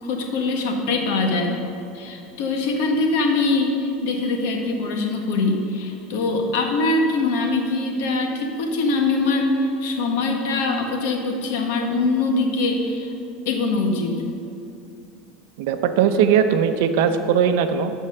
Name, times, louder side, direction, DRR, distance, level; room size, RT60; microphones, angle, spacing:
voice 1, 0.0-1.5 1.9-13.1 13.4-14.2, left 3 dB, 70° left, 2 dB, 1.6 m, -23 dB
voice 2, 15.6-17.9, right 8 dB, 65° right, 8 dB, 0.7 m, -19 dB
12.5 x 4.6 x 6.6 m, 2.5 s
supercardioid pair, 165°, 0 cm